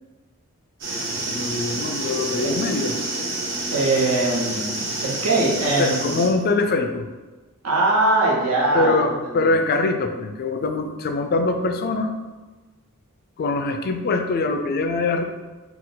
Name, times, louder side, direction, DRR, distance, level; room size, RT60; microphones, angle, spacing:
sound 1, 0.8-6.3, right 2 dB, 60° right, 0.9 m, -28 dB
voice 1, 1.3-2.9 5.8-7.1 8.7-12.2 13.4-15.2, left 3 dB, 45° left, 6 dB, 0.3 m, -23 dB
voice 2, 3.7-6.2 7.6-9.0 9.3-9.5, right 2 dB, 90° right, -3 dB, 1.1 m, -21 dB
4.1 x 2.3 x 3.9 m, 1.2 s
head